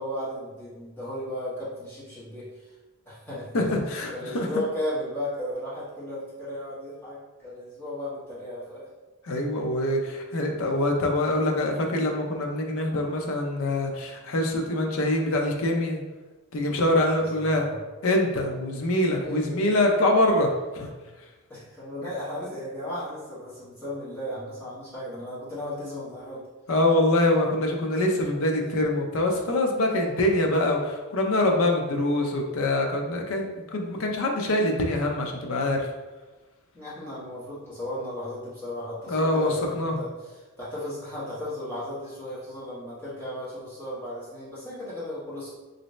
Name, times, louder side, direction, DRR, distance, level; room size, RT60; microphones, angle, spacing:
voice 1, 0.0-2.7 3.0-3.7 4.1-8.9 17.1-17.2 17.5-17.8 19.2-19.6 21.5-26.4 36.7-40.1 40.6-45.5, left 1 dB, 10° left, -11 dB, 1.2 m, -35 dB
voice 2, 3.5-4.5 9.2-16.0 16.5-17.6 18.0-20.9 26.7-35.9 39.1-40.0, left 1 dB, 70° left, 2 dB, 0.5 m, -24 dB
3.0 x 2.7 x 3.1 m, 1.2 s
head